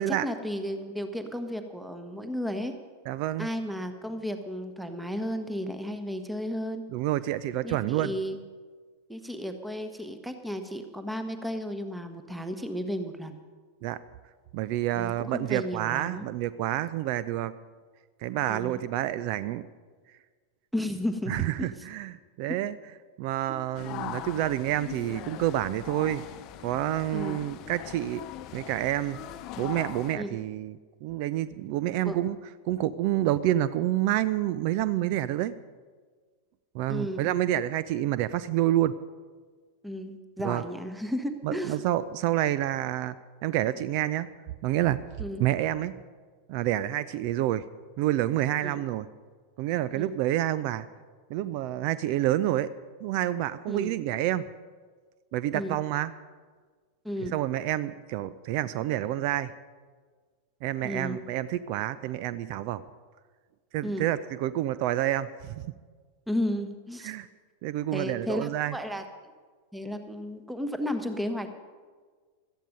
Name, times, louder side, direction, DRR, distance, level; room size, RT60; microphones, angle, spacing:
voice 1, 0.0-2.7 3.4-6.8 7.6-8.4 9.1-13.4 14.9-16.3 18.5-18.8 20.7-21.3 23.5-23.6 27.1-27.4 30.2-30.3 32.0-32.2 36.9-37.3 39.8-41.8 45.2-45.4 48.6-48.8 49.9-50.1 53.7-53.9 55.5-55.8 57.0-57.3 60.8-61.3 63.8-64.1 66.3-67.1 67.9-69.0 69.7-71.5, equal, 5° right, 8 dB, 1.2 m, -33 dB
voice 2, 3.1-3.5 6.9-8.1 13.8-14.0 14.5-17.5 18.2-19.6 21.3-22.7 23.2-26.2 26.6-28.2 28.5-29.2 29.6-32.4 32.6-35.5 36.7-38.9 40.4-40.6 41.4-43.2 43.4-44.3 44.6-45.0 45.4-45.9 46.5-47.7 48.0-49.1 49.6-50.9 51.3-52.7 53.0-54.4 55.3-56.1 57.3-59.5 60.6-62.8 63.7-65.6 67.0-67.3 67.6-68.7, right 13 dB, 45° right, 16 dB, 0.5 m, -28 dB
sound 1, 23.7-30.1, left 11 dB, 40° left, 0.9 m, -41 dB
17.5 x 13.5 x 5.3 m, 1.5 s
figure-of-eight pair, 90°, 0 cm